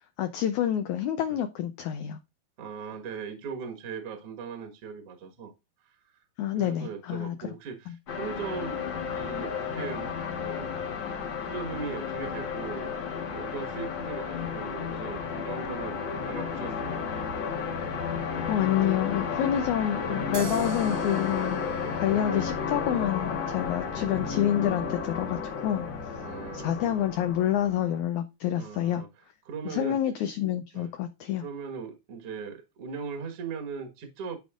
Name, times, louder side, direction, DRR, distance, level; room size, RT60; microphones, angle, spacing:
voice 1, 0.2-2.2 6.4-7.4 7.9-8.0 18.5-21.6 22.0-26.2 26.5-29.0 29.7-31.4, left 11 dB, 90° left, 1.7 m, -28 dB
voice 2, 2.6-5.5 5.8-6.2 6.5-8.9 9.1-10.8 11.4-12.9 13.3-17.1 22.3-22.5 26.2-26.7 28.5-29.1 29.5-30.0 30.7-30.9 31.4-34.4, right 5 dB, 55° right, 1.8 m, -39 dB
sound 1, 8.1-28.0, left 6 dB, 65° left, 1.1 m, -33 dB
sound 2, 20.3-27.6, right 9 dB, 85° right, 3.0 m, -45 dB
12.0 x 5.2 x 2.4 m
omnidirectional pair, 4.2 m